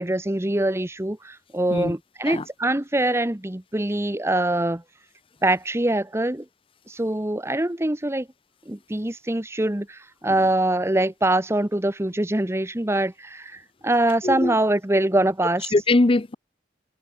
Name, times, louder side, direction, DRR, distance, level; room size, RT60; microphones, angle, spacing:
voice 1, 0.0-4.8 5.4-6.4 6.9-8.3 8.7-15.6, right 1 dB, 15° right, 1.0 m, -24 dB
voice 2, 14.2-14.5 15.7-16.3, left 2 dB, 30° left, 0.6 m, -21 dB
head